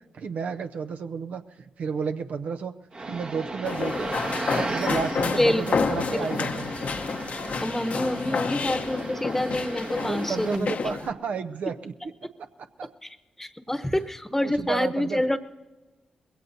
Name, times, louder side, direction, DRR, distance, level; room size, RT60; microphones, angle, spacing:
voice 1, 0.1-6.7 8.3-8.4 10.0-11.9 12.2-12.9 14.4-15.4, right 5 dB, 70° right, 7 dB, 0.6 m, -32 dB
sound 1, 2.9-10.6, right 3 dB, 50° right, 1.3 m, -35 dB
sound 2, 3.6-11.1, left 5 dB, 65° left, 0.9 m, -29 dB
voice 2, 5.3-5.9 6.5-6.6 7.6-10.7 13.0-15.4, left 1 dB, 15° left, 9 dB, 1.0 m, -27 dB
21.0 x 17.0 x 2.7 m, 1.2 s
supercardioid pair, 40°, 3 cm